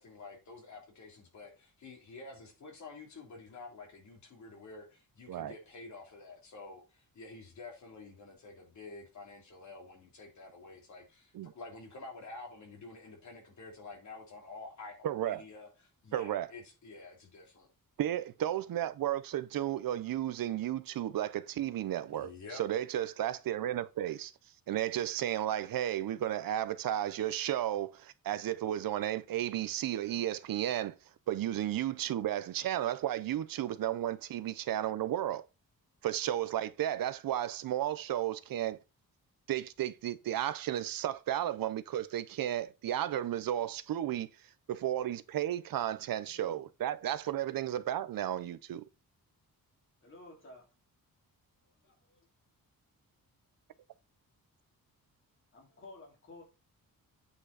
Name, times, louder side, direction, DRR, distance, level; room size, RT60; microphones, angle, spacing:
voice 1, 0.0-15.0 15.2-15.7 16.0-17.7 22.1-22.6, left 3 dB, 50° left, 3.1 m, -49 dB
voice 2, 15.0-15.4 16.1-16.5 18.0-24.3 24.7-31.0 31.3-35.4 36.0-38.8 39.5-44.3 44.7-48.9, right 12 dB, 70° right, 0.7 m, -33 dB
voice 3, 46.2-46.7 50.0-50.7 51.8-52.2 55.5-56.4, left 2 dB, 35° left, 3.3 m, -53 dB
8.7 x 5.3 x 4.1 m
wide cardioid pair, 180°, 36 cm